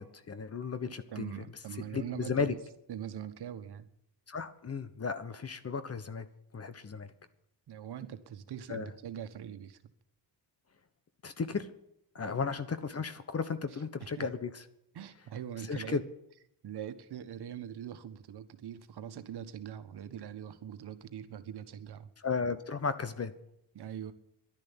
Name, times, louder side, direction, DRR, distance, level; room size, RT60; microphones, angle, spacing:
voice 1, 0.0-1.3 1.9-2.5 4.3-6.3 6.5-7.1 8.7-8.9 11.2-11.7 12.1-14.6 15.7-16.0 22.2-23.3, left 5 dB, 35° left, 12 dB, 1.2 m, -34 dB
voice 2, 0.8-2.6 2.9-3.9 7.7-9.8 12.2-12.4 14.2-14.3 14.9-16.0 16.6-22.1 23.7-24.1, right 9 dB, 70° right, 10 dB, 1.5 m, -42 dB
11.5 x 10.5 x 9.9 m, 0.77 s
cardioid pair, 115°, 41 cm